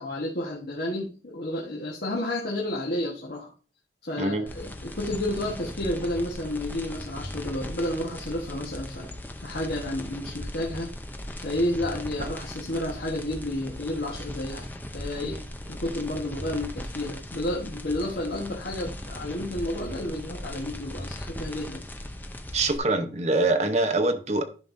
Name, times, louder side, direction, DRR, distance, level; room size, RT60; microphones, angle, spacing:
voice 1, 0.0-3.5 4.0-9.1 9.4-10.9 11.4-14.7 14.9-15.4 15.7-21.8, left 1 dB, 65° left, 1.4 m, -31 dB
sound 1, 4.5-22.8, left 1 dB, 10° left, 0.6 m, -38 dB
voice 2, 22.5-24.4, right 2 dB, 40° right, 0.8 m, -24 dB
11.0 x 5.4 x 2.6 m
head